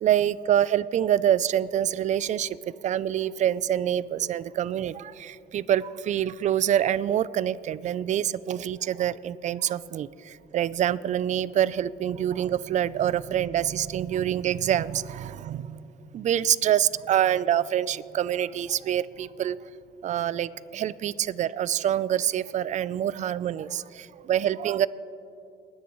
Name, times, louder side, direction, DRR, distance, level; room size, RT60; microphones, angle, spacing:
voice 1, 0.0-2.6 2.8-15.8 16.1-19.6 20.0-24.9, right 10 dB, 45° right, 18 dB, 0.4 m, -26 dB
30.0 x 10.0 x 3.1 m, 2.7 s
cardioid pair, 110°, 17 cm